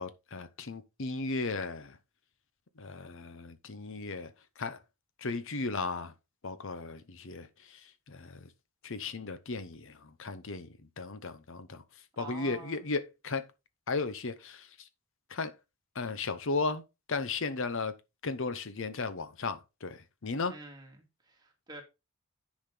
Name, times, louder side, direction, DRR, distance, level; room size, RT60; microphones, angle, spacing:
voice 1, 0.0-2.0 2.8-4.3 4.6-4.8 5.2-6.1 6.4-8.5 8.8-11.8 12.2-13.4 13.9-14.7 15.3-15.5 15.9-16.8 17.1-17.9 18.2-20.5, left 3 dB, 60° left, 0.8 m, -35 dB
voice 2, 12.2-12.8 20.5-21.8, right 2 dB, 20° right, 2.3 m, -47 dB
10.0 x 5.1 x 3.8 m
head